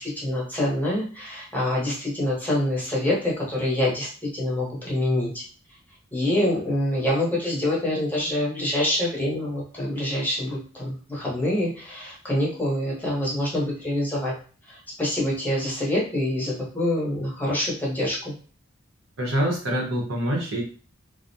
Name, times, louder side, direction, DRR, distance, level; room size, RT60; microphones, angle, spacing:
voice 1, 0.0-5.4 6.1-14.3 14.7-18.3, left 1 dB, 10° left, -5 dB, 0.8 m, -26 dB
voice 2, 19.2-20.6, equal, 75° right, -2 dB, 0.9 m, -25 dB
2.4 x 2.1 x 2.7 m, 0.39 s
head